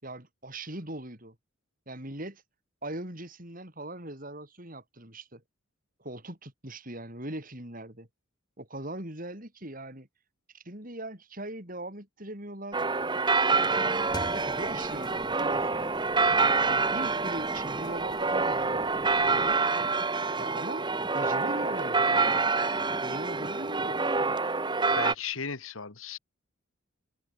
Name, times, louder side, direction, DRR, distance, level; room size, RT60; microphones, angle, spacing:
voice 1, 0.0-1.4 1.9-2.4 2.8-5.4 6.0-8.1 8.6-10.1 10.5-12.8 13.7-16.0 16.6-19.6 20.4-20.9 21.1-22.4 23.0-24.1, right 1 dB, 40° right, 5.6 m, -40 dB
sound 1, 12.7-25.1, right 4 dB, 20° right, 1.2 m, -27 dB
Traffic noise roadway noise / Engine, 13.5-24.4, equal, ahead, 5.9 m, -46 dB
sound 2, 14.0-19.6, left 1 dB, 20° left, 2.4 m, -49 dB
voice 2, 24.9-26.2, left 6 dB, 70° left, 2.0 m, -36 dB
head